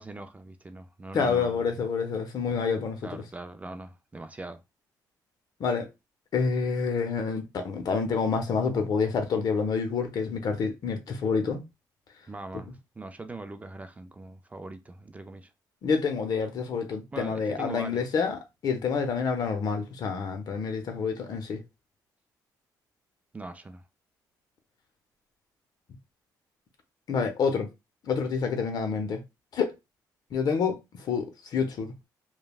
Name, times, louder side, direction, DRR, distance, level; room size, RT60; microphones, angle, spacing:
voice 1, 0.0-1.6 3.0-4.6 12.3-15.5 17.1-18.1 23.3-23.8, right 2 dB, 20° right, 0.4 m, -41 dB
voice 2, 1.1-3.2 5.6-5.9 6.3-11.6 15.8-21.6 27.1-27.7 28.0-29.2 29.5-29.7 30.3-31.3 31.5-31.9, left 5 dB, 55° left, 0.7 m, -28 dB
3.2 x 2.2 x 2.3 m
cardioid pair, 95°, 8 cm